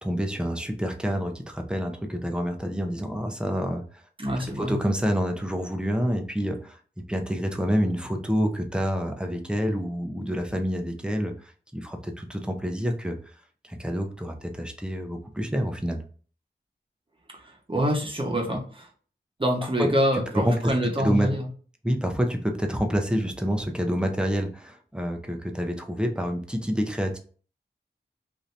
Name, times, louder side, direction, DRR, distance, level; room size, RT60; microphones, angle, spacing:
voice 1, 0.0-4.0 4.6-6.8 7.1-13.2 13.6-16.0 19.8-19.9 20.3-20.6 21.0-21.3 21.8-27.2, equal, 5° right, 3 dB, 0.5 m, -27 dB
voice 2, 4.2-4.8 17.3-18.9 19.4-21.5, equal, 25° right, 0 dB, 0.9 m, -26 dB
2.7 x 2.6 x 3.2 m, 0.41 s
wide cardioid pair, 75°, 19 cm